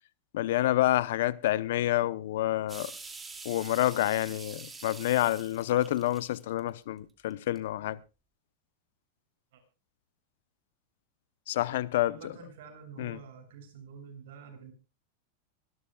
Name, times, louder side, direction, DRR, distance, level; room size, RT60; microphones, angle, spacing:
voice 1, 0.3-2.9 3.4-8.0 11.5-12.2 13.0-13.2, left 14 dB, 70° left, 0.8 m, -28 dB
sound 1, 2.7-6.8 7.3-7.6, right 4 dB, 15° right, 2.5 m, -46 dB
voice 2, 12.0-14.7, right 6 dB, 70° right, 7.1 m, -48 dB
25.0 x 12.5 x 2.3 m
supercardioid pair, 140°, 0 cm